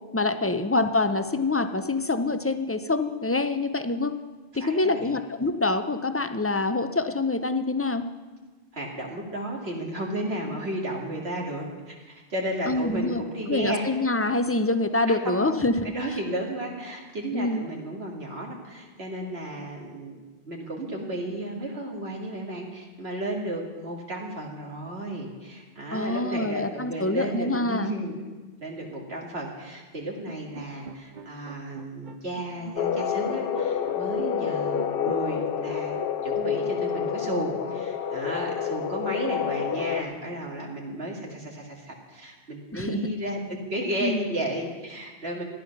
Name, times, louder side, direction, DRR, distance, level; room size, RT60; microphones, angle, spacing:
voice 1, 0.1-4.1 4.5-8.0 12.7-13.2 13.5-15.9 17.3-17.6 25.9-27.9 42.7-43.0 44.0-44.3, left 2 dB, 20° left, 9 dB, 0.4 m, -26 dB
voice 2, 4.6-5.1 8.7-13.9 15.1-15.6 15.8-20.2 20.5-28.1 28.6-45.4, right 1 dB, 70° right, 0 dB, 2.3 m, -33 dB
sound 1, 30.3-36.3, right 3 dB, 45° right, 0.9 m, -43 dB
sound 2, 32.8-40.0, left 8 dB, 65° left, 0.8 m, -28 dB
14.0 x 11.0 x 5.9 m, 1.3 s
omnidirectional pair, 1.1 m